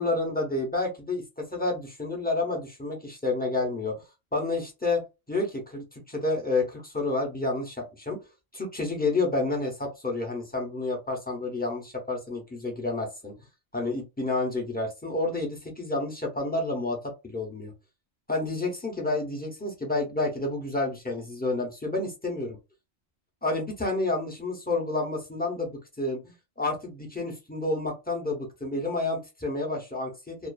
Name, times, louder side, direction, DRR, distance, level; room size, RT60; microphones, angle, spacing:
voice 1, 0.0-4.0 4.3-5.0 5.3-8.2 8.5-13.3 13.7-17.7 18.3-22.6 23.4-30.5, left 2 dB, 10° left, -1 dB, 0.5 m, -30 dB
2.5 x 2.3 x 2.3 m, 0.25 s
omnidirectional pair, 1.3 m